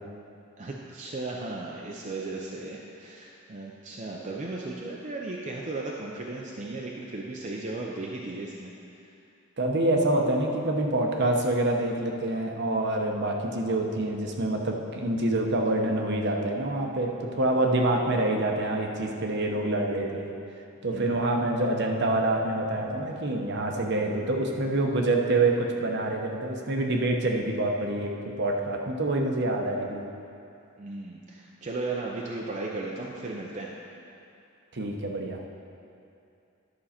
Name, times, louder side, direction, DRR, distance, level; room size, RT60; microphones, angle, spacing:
voice 1, 0.6-8.7 20.9-21.3 30.8-33.7, right 2 dB, 35° right, -2 dB, 0.6 m, -36 dB
voice 2, 9.6-20.3 20.8-28.1 28.4-30.0 34.7-35.4, right 2 dB, 55° right, 1 dB, 0.9 m, -26 dB
11.5 x 6.3 x 4.3 m, 2.6 s
head